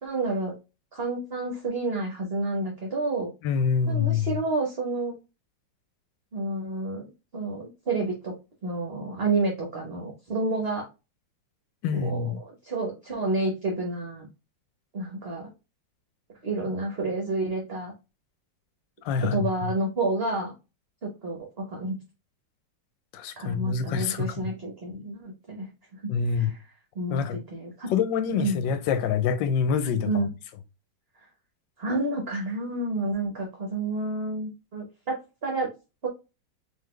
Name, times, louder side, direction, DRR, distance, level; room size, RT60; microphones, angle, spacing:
voice 1, 0.0-0.5 0.9-3.3 3.9-5.2 6.3-8.3 8.6-10.9 11.9-14.3 14.9-15.5 16.4-17.9 19.1-20.5 21.0-22.0 23.4-26.6 26.9-27.9 28.4-28.6 30.1-30.3 31.8-35.7 36.0-36.1, right 2 dB, 40° right, 1.0 m, -30 dB
voice 2, 3.4-4.3 11.8-12.4 19.0-19.7 23.1-24.5 26.1-26.5 27.1-27.4 27.9-30.3, left 6 dB, 85° left, 1.3 m, -26 dB
3.9 x 3.0 x 3.2 m
omnidirectional pair, 2.0 m